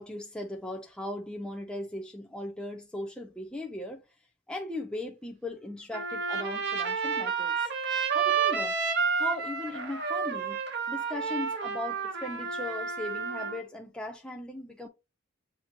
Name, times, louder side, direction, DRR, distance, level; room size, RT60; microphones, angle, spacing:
voice 1, 0.0-4.0 4.5-7.7 8.1-10.6 10.9-14.9, left 1 dB, 5° left, 0.6 m, -38 dB
Trumpet, 5.9-13.6, right 5 dB, 55° right, 1.4 m, -30 dB
7.3 x 2.9 x 2.5 m
head